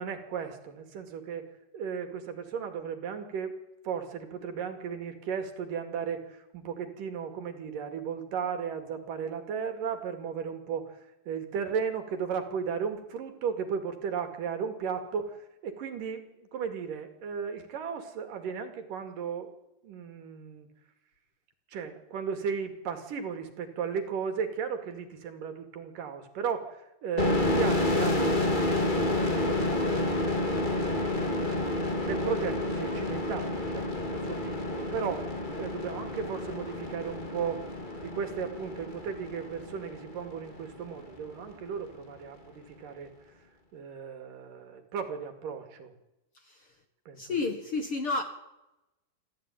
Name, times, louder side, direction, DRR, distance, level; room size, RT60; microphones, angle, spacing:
voice 1, 0.0-3.6 3.8-19.5 19.8-20.7 21.7-37.7 38.0-43.1 43.7-45.9 47.1-47.4, right 6 dB, 65° right, 7 dB, 3.7 m, -35 dB
sound 1, 27.2-40.6, left 2 dB, 20° left, 1.6 m, -30 dB
voice 2, 47.2-48.2, left 3 dB, 45° left, 6 dB, 2.0 m, -30 dB
27.0 x 14.5 x 9.2 m, 0.94 s
omnidirectional pair, 4.3 m